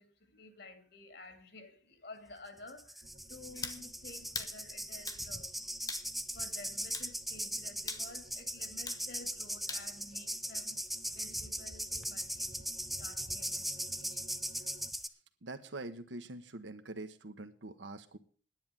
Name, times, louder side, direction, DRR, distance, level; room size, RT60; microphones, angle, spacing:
voice 1, 0.0-5.7 6.1-10.8 11.1-12.5 13.0-14.6, left 2 dB, 60° left, 2.3 m, -53 dB
sound 1, 2.7-15.1, equal, ahead, 0.5 m, -39 dB
sound 2, 3.0-14.9, right 1 dB, 45° right, 0.9 m, -58 dB
sound 3, 3.6-3.8 4.3-4.6 5.1-5.2 5.9-6.1 6.9-7.1 7.9-8.1 8.9-9.0 9.7-9.9, left 4 dB, 20° left, 1.1 m, -40 dB
voice 2, 15.4-18.2, right 2 dB, 80° right, 1.1 m, -44 dB
10.5 x 9.0 x 7.3 m
head